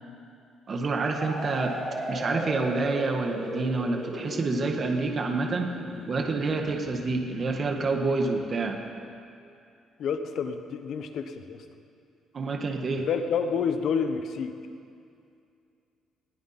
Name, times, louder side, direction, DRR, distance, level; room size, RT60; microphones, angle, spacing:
voice 1, 0.7-1.8 2.1-5.7 6.1-8.8 12.3-13.1, right 3 dB, 35° right, 3 dB, 1.5 m, -28 dB
sound 1, 1.1-8.8, equal, 10° right, 5.4 m, -37 dB
voice 2, 10.0-11.6 13.0-14.6, left 6 dB, 60° left, 8 dB, 1.1 m, -29 dB
20.0 x 16.5 x 4.3 m, 2.5 s
cardioid pair, 135°, 0 cm